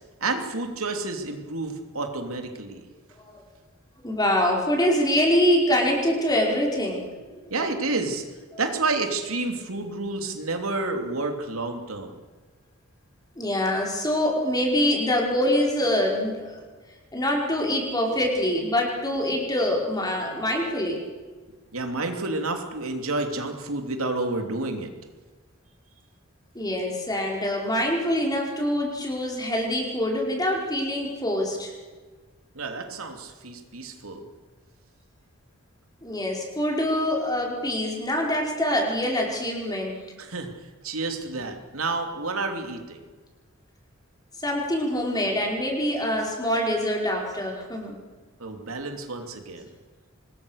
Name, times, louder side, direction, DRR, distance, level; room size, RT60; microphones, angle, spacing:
voice 1, 0.2-2.9 7.4-8.2 8.6-12.1 21.7-24.9 32.5-34.2 40.2-40.5 40.8-43.0 48.4-49.7, right 3 dB, 80° right, 4 dB, 3.1 m, -30 dB
voice 2, 4.0-7.0 8.5-8.6 13.4-16.6 17.1-21.0 26.5-31.7 36.0-40.0 44.4-48.0, left 1 dB, 20° left, 0 dB, 5.0 m, -25 dB
25.5 x 20.5 x 6.6 m, 1.4 s
head